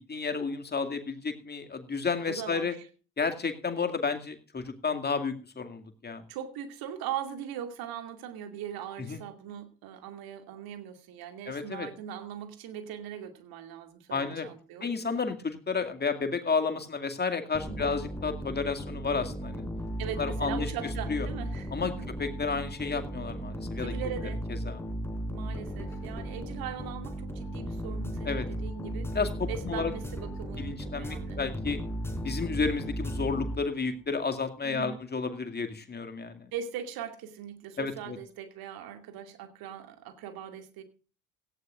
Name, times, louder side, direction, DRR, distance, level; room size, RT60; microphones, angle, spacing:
voice 1, 0.1-2.7 3.2-6.2 9.0-9.2 11.5-11.9 14.1-14.5 14.8-19.6 20.2-20.7 21.1-21.3 21.7-21.9 22.2-23.9 24.7-24.8 28.2-28.5 29.1-29.9 30.6-31.8 32.2-36.5 37.8-38.2, left 5 dB, 25° left, 7 dB, 2.3 m, -31 dB
voice 2, 2.3-2.9 6.3-14.9 17.7-17.9 20.0-22.1 23.8-24.4 25.3-29.2 29.5-31.4 34.6-35.0 36.5-40.8, right 9 dB, 55° right, 7 dB, 2.4 m, -40 dB
sound 1, 17.5-34.0, right 1 dB, 5° left, 3.9 m, -36 dB
17.5 x 15.0 x 2.5 m, 0.36 s
figure-of-eight pair, 55°, 43 cm